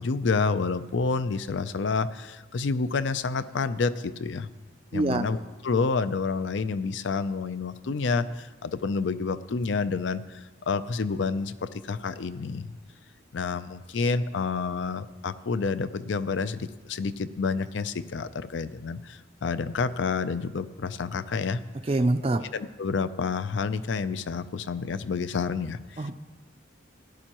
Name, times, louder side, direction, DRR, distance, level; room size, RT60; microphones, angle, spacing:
voice 1, 0.0-4.5 4.9-12.7 13.3-21.6 22.5-26.1, left 4 dB, 70° left, 13 dB, 0.5 m, -29 dB
voice 2, 4.9-5.2 21.9-22.4 26.0-26.1, right 2 dB, 30° right, 8 dB, 0.4 m, -24 dB
17.0 x 11.0 x 3.0 m, 1.3 s
head